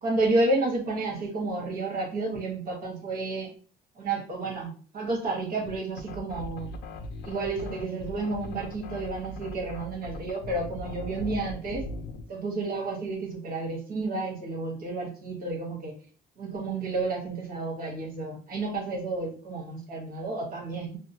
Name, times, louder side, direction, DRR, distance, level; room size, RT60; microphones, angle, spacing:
voice 1, 0.0-3.5 4.0-6.7 7.2-11.9 12.3-15.9 16.4-21.0, right 2 dB, 60° right, -1 dB, 1.1 m, -31 dB
sound 1, 5.7-12.3, left 2 dB, 75° left, 0.5 m, -39 dB
2.8 x 2.0 x 2.6 m, 0.41 s
cardioid pair, 110°, 17 cm